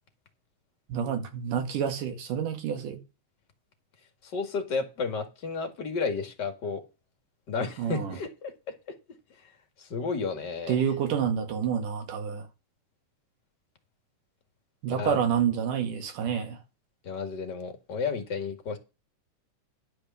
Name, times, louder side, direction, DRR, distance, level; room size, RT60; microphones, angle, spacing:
voice 1, 0.9-3.0 7.8-8.2 10.7-12.4 14.8-16.6, right 8 dB, 80° right, 3.5 m, -28 dB
voice 2, 4.2-6.8 7.5-8.5 9.8-10.8 14.9-15.2 17.0-18.8, left 4 dB, 35° left, 2.3 m, -32 dB
11.5 x 5.1 x 7.0 m
omnidirectional pair, 3.6 m